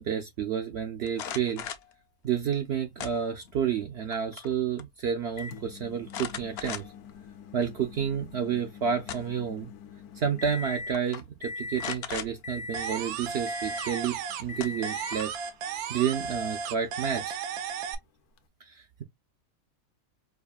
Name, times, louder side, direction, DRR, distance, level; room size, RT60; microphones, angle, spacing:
voice 1, 0.0-1.7 2.2-6.8 7.5-9.7 10.2-15.3 15.9-17.4 18.6-19.0, right 8 dB, 60° right, 0.7 m, -30 dB
sound 1, 1.1-1.9 3.0-3.6 4.0-4.5 4.8-4.9 6.1-7.1 7.6-7.7 8.8-9.5 10.5-10.6 10.9-11.2 11.8-12.3 14.1-14.2 14.6-15.4, left 8 dB, 60° left, 0.6 m, -38 dB
Microwave oven, 5.4-11.0 11.4-12.0 12.4-13.1 13.5-14.1 14.5-15.3 16.3-16.4 18.4-18.5, left 3 dB, 85° left, 1.1 m, -41 dB
sound 2, 12.7-14.6 14.8-17.9, right 7 dB, 80° right, 1.1 m, -34 dB
4.7 x 2.5 x 2.3 m
omnidirectional pair, 1.5 m